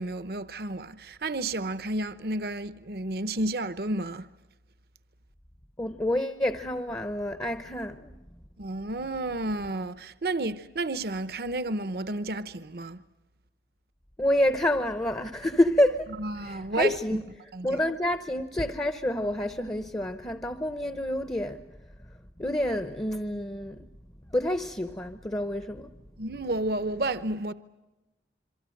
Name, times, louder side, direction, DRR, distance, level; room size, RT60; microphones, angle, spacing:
voice 1, 0.0-4.3 8.6-13.0 16.2-16.9 17.5-17.8 26.2-27.5, right 2 dB, 55° right, 0.8 m, -31 dB
voice 2, 5.8-8.2 14.2-16.1 16.5-17.2 17.6-21.6 22.4-23.8 24.3-25.9, left 1 dB, 20° left, 0.8 m, -28 dB
27.0 x 24.0 x 7.8 m
head